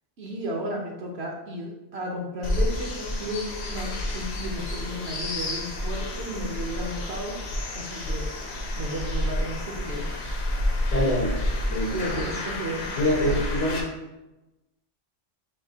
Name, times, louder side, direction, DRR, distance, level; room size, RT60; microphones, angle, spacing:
voice 1, 0.2-3.4 3.7-8.3 8.8-10.2 11.9-12.9, equal, 60° right, 0 dB, 1.0 m, -33 dB
sound 1, 2.4-13.8, left 1 dB, 65° left, 1.0 m, -30 dB
voice 2, 10.9-11.3 11.7-12.3 13.0-13.8, equal, 85° left, -4 dB, 1.7 m, -25 dB
6.6 x 2.6 x 2.8 m, 1.0 s
omnidirectional pair, 1.2 m